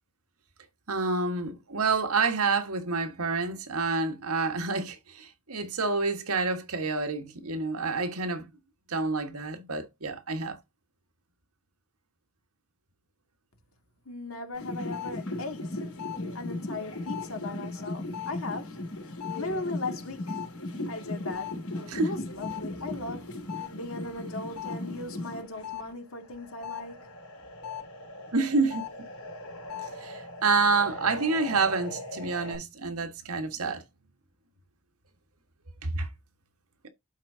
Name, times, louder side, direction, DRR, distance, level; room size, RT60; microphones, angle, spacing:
voice 1, 0.9-8.5 8.9-10.6 21.9-22.1 28.3-28.8 29.8-33.8 35.8-36.1, right 4 dB, 85° right, 1.5 m, -28 dB
voice 2, 14.1-15.9 16.3-18.8 19.3-20.4 20.9-21.6 22.0-23.4 23.7-27.2, left 2 dB, 65° left, 2.2 m, -38 dB
sound 1, 14.5-25.8 26.2-32.6, left 2 dB, 85° left, 4.3 m, -37 dB
12.0 x 4.5 x 2.7 m
head